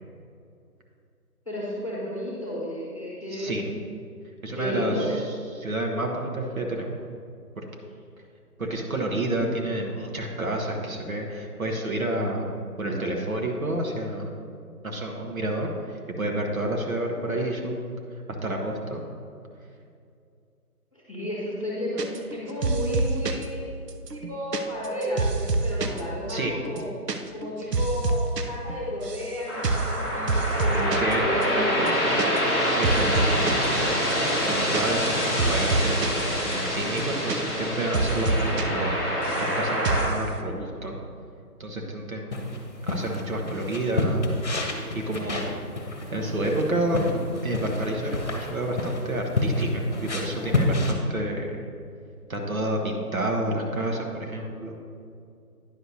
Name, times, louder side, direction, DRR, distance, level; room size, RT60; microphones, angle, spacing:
voice 1, 1.5-3.7 4.5-5.1 20.9-23.7 24.1-26.9 27.3-30.3 30.6-32.0, equal, 20° left, -7 dB, 1.0 m, -32 dB
voice 2, 3.3-3.7 4.4-5.2 5.5-7.0 7.6-7.7 8.6-12.5 12.8-14.3 14.8-17.8 18.4-19.0 26.3-26.5 27.6-27.8 30.9-31.2 32.7-33.6 34.5-36.2 36.4-39.0 39.4-41.0 41.6-42.5 42.8-44.3 44.6-45.5 46.1-47.0 47.4-51.6 52.3-54.8, right 1 dB, 60° right, 1 dB, 1.1 m, -29 dB
sound 1, 22.0-22.4 22.6-23.5 23.9-26.0 26.3-26.4 26.7-27.2 27.4-28.4 28.7-29.3 29.6-30.0 30.3-31.1 31.4-31.5 31.8-32.6 32.8-33.7 34.1-36.2 36.5-36.6 36.9-37.7 37.9-38.6 38.9-39.5 39.8-40.2, right 3 dB, 85° right, 0.8 m, -27 dB
sound 2, 29.5-40.0, equal, 20° right, 1.3 m, -26 dB
light footsteps on carpet walk, 42.3-50.9, left 2 dB, 45° left, 1.0 m, -29 dB
10.0 x 6.4 x 2.7 m, 2.4 s
figure-of-eight pair, 170°, 47 cm